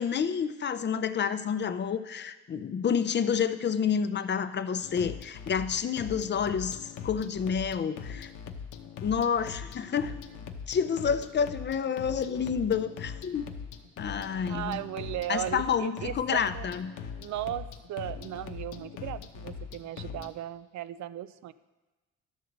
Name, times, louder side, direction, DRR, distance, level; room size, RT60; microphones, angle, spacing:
voice 1, 0.0-8.3 9.0-10.1 10.7-13.5 14.0-14.8 15.3-16.9, left 7 dB, 35° left, 12 dB, 0.5 m, -29 dB
sound 1, 4.8-20.3, left 7 dB, 85° left, 0.8 m, -41 dB
voice 2, 14.5-16.7 17.2-21.5, right 13 dB, 70° right, 16 dB, 0.5 m, -36 dB
12.0 x 6.6 x 3.9 m, 1.2 s
cardioid pair, 90°, 30 cm